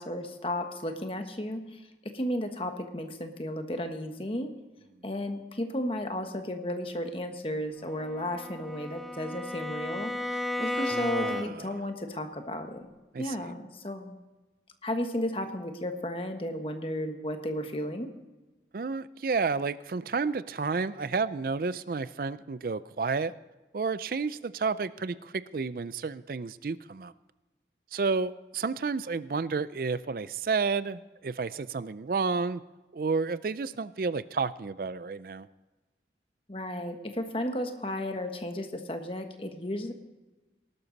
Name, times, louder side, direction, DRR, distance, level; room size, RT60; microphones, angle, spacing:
voice 1, 0.0-4.5 5.0-12.9 13.2-14.2 14.8-18.1 36.5-39.9, left 1 dB, 30° left, 6 dB, 1.3 m, -34 dB
Bowed string instrument, 7.9-11.8, left 2 dB, ahead, 0.5 m, -34 dB
voice 2, 10.8-11.8 13.1-13.5 18.7-23.3 23.7-27.1 27.9-32.6 32.9-35.5, right 4 dB, 50° right, 16 dB, 0.4 m, -31 dB
19.0 x 12.0 x 4.0 m, 1.1 s
head